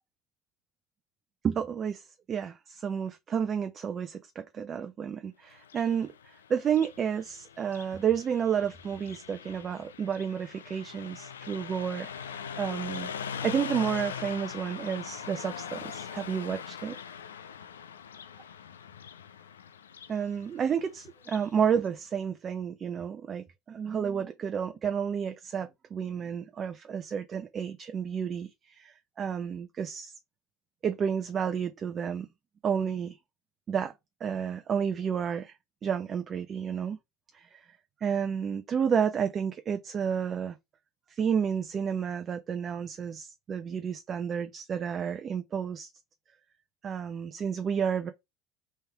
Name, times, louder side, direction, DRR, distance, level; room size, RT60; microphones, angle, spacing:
voice 1, 1.4-13.1 13.4-17.0 20.1-30.1 30.8-32.3 32.6-33.2 33.7-33.9 34.2-35.5 35.8-37.0 37.3-37.7 38.0-40.6 41.1-45.9 46.8-48.1, right 7 dB, 40° right, 0.7 m, -31 dB
Car passing by, 5.5-21.5, left 7 dB, 85° left, 0.5 m, -42 dB
4.3 x 3.5 x 3.4 m
hypercardioid pair, 70°, 0 cm